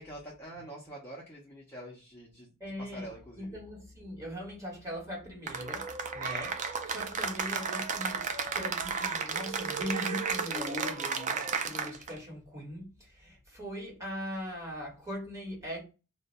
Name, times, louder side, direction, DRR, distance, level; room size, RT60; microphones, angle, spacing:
voice 1, 0.0-2.5 2.8-3.6, right 1 dB, 10° left, 0.7 m, -46 dB
voice 2, 2.6-3.1 3.4-15.8, left 1 dB, 15° right, 1.2 m, -40 dB
Cheering / Applause, 5.5-12.2, right 5 dB, 35° right, 0.3 m, -33 dB
2.5 x 2.1 x 3.9 m
head